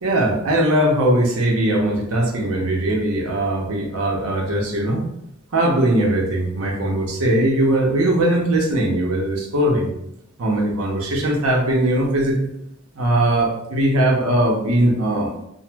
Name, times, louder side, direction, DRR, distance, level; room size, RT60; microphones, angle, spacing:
voice 1, 0.0-5.1 5.5-9.9 10.4-12.5 13.0-15.3, right 1 dB, 80° right, 0 dB, 0.7 m, -20 dB
2.9 x 2.1 x 3.3 m, 0.80 s
head